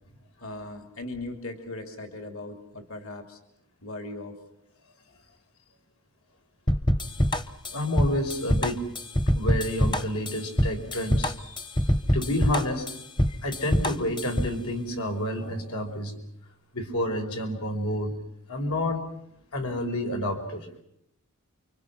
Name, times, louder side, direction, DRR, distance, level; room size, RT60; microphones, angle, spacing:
voice 1, 0.4-3.4 3.8-4.4, left 2 dB, 65° left, 5 dB, 2.9 m, -38 dB
sound 1, 6.7-14.6, equal, 20° left, 0.9 m, -25 dB
voice 2, 7.7-8.8 9.3-12.9 13.3-16.1 16.7-18.2 18.5-19.1 19.5-20.7, left 1 dB, 85° left, 3 dB, 5.1 m, -29 dB
29.0 x 25.0 x 6.1 m, 0.75 s
head